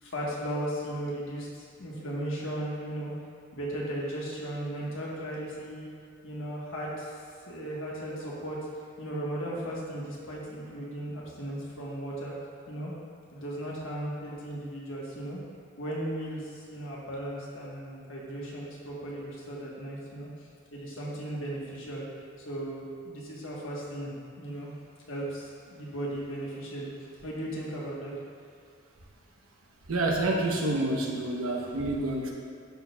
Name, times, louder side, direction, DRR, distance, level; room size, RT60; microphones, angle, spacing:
voice 1, 0.0-3.1 3.5-5.9 6.2-7.1 7.5-8.6 9.0-12.3 12.7-12.9 13.3-15.4 15.8-20.3 20.7-22.1 22.5-24.7 25.1-26.9 27.2-28.1, right 1 dB, 70° left, -4 dB, 1.4 m, -36 dB
voice 2, 29.9-32.3, right 2 dB, 80° right, 0 dB, 0.9 m, -28 dB
12.0 x 4.3 x 2.3 m, 2.5 s
head